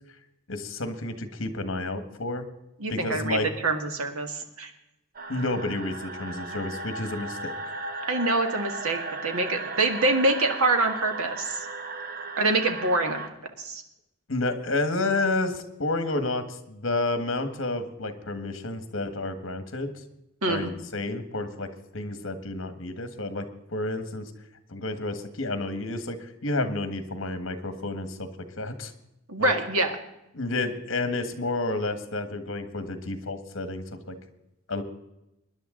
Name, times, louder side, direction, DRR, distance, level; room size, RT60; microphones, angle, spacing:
voice 1, 0.5-2.5 2.9-3.5 5.3-7.5 14.3-19.9 20.5-24.3 24.7-28.3 28.6-28.9 29.4-29.5 30.3-34.1 34.7-34.8, left 2 dB, 65° left, 9 dB, 1.5 m, -30 dB
voice 2, 2.8-4.7 8.0-11.7 12.4-13.2 13.6-13.8 20.4-20.7 29.3-29.9, right 2 dB, 90° right, 5 dB, 1.9 m, -25 dB
sound 1, 5.1-13.3, right 3 dB, 40° right, 1.1 m, -36 dB
23.0 x 10.5 x 3.8 m, 0.89 s
head